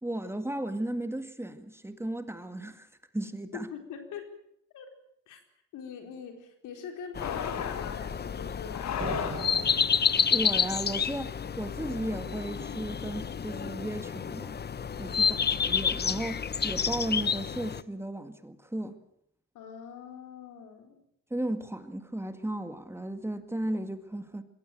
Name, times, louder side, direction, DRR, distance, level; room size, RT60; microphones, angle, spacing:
voice 1, 0.0-2.9 3.1-3.7 10.3-14.6 15.0-15.4 15.6-19.0 21.3-24.4, right 1 dB, 10° right, 2.0 m, -35 dB
voice 2, 3.5-4.4 4.7-4.9 5.3-5.4 5.7-8.9 15.2-15.8 19.5-21.0, left 7 dB, 85° left, 4.4 m, -43 dB
sound 1, 7.2-8.1 8.7-9.9, left 9 dB, 60° left, 1.8 m, -35 dB
sound 2, 7.2-17.8, left 6 dB, 35° left, 0.9 m, -30 dB
sound 3, 9.0-10.8, right 6 dB, 30° right, 0.9 m, -41 dB
22.0 x 17.0 x 9.1 m
cardioid pair, 90°, 30 cm